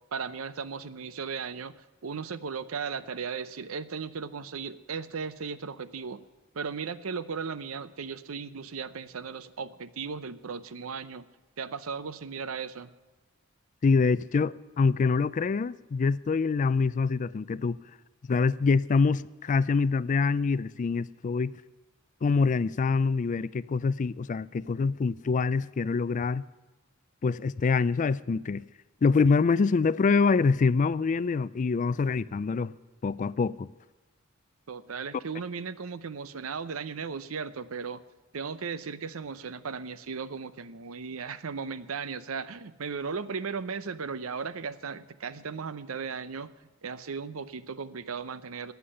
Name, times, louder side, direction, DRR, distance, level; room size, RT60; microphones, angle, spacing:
voice 1, 0.1-1.8 2.0-6.3 6.5-11.3 11.6-12.9 34.7-38.0 38.3-46.5 46.8-48.7, right 5 dB, 85° right, 0.7 m, -36 dB
voice 2, 13.8-17.8 18.3-21.5 22.2-26.4 27.2-28.6 29.0-32.7 33.0-33.7, left 4 dB, 35° left, 0.3 m, -25 dB
13.0 x 8.2 x 9.9 m
head